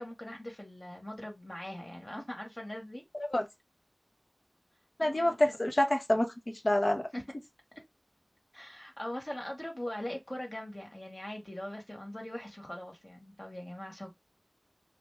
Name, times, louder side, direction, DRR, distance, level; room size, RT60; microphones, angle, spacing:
voice 1, 0.0-3.0 5.0-5.6 7.1-7.3 8.5-14.1, left 1 dB, 40° left, 1.7 m, -41 dB
voice 2, 5.0-7.1, left 1 dB, 60° left, 0.9 m, -27 dB
5.0 x 2.1 x 3.5 m
wide cardioid pair, 40°, 0 cm